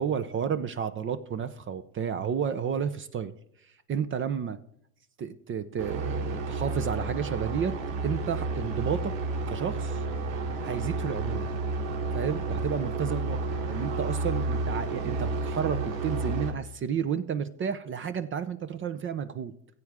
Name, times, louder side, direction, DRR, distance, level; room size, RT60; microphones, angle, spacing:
voice 1, 0.0-3.3 3.6-4.6 5.2-7.8 8.0-9.1 9.5-10.0 10.6-11.5 12.1-19.5, right 7 dB, 30° right, 12 dB, 0.7 m, -31 dB
sound 1, 5.8-16.5, right 3 dB, 70° right, 2.6 m, -31 dB
15.5 x 8.2 x 3.6 m, 0.70 s
hypercardioid pair, 100°, 44 cm